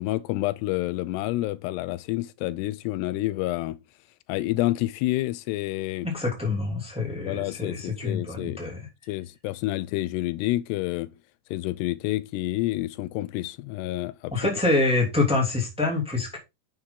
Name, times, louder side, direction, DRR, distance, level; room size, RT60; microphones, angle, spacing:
voice 1, 0.0-3.8 4.3-6.1 7.2-8.6 9.1-11.1 11.5-14.3, left 17 dB, 85° left, 2.7 m, -28 dB
voice 2, 6.0-8.9 14.3-16.4, left 3 dB, ahead, 1.8 m, -26 dB
9.7 x 6.5 x 3.7 m
omnidirectional pair, 4.7 m